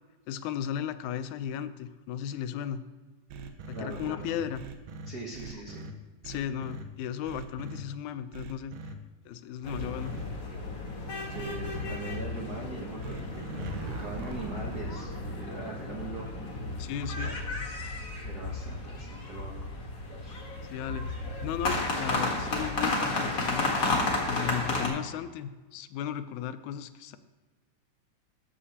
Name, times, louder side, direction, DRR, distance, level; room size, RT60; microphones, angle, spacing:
voice 1, 0.3-2.8 3.7-4.6 6.3-8.7 9.3-10.2 16.8-17.4 20.6-23.8 24.3-27.2, left 9 dB, 85° left, 11 dB, 2.0 m, -35 dB
sound 1, 3.3-5.9 6.2-6.8 7.3-7.8 8.3-8.9 9.7-10.2 11.3-11.9 13.0-15.0, right 3 dB, 80° right, 2.1 m, -41 dB
voice 2, 3.7-4.3 5.1-5.9 11.3-16.5 17.1-17.4 18.2-19.8 20.2-20.4, right 3 dB, 65° right, -4 dB, 0.9 m, -41 dB
sound 2, 9.6-24.9, left 2 dB, 45° left, 1.2 m, -33 dB
14.0 x 7.3 x 2.8 m, 1.3 s
omnidirectional pair, 3.4 m